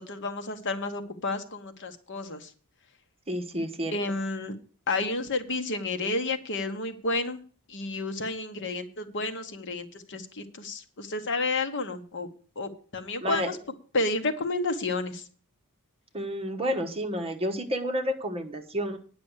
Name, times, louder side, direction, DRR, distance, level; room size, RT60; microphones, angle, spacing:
voice 1, 0.0-2.5 3.9-4.6 4.9-7.4 7.7-12.3 12.6-13.6 13.9-15.2, left 3 dB, 55° left, 8 dB, 1.1 m, -31 dB
voice 2, 3.3-4.0 13.2-13.5 16.1-19.0, equal, 25° right, 5 dB, 1.2 m, -30 dB
9.8 x 6.1 x 8.0 m, 0.41 s
head